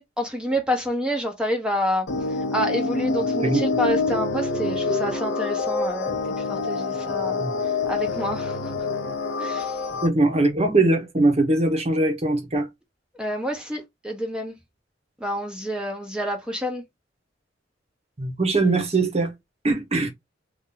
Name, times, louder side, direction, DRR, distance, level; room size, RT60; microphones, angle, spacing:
voice 1, 0.0-2.1 2.5-6.2 6.5-7.4 7.9-8.9 9.4-9.8 13.2-14.6 15.2-16.8, equal, 5° right, 0.9 m, -28 dB
sound 1, 2.1-10.1, left 3 dB, 90° left, 0.7 m, -26 dB
voice 2, 10.0-12.7 18.2-19.3 19.6-20.1, right 2 dB, 35° right, 1.0 m, -21 dB
2.7 x 2.7 x 3.7 m
head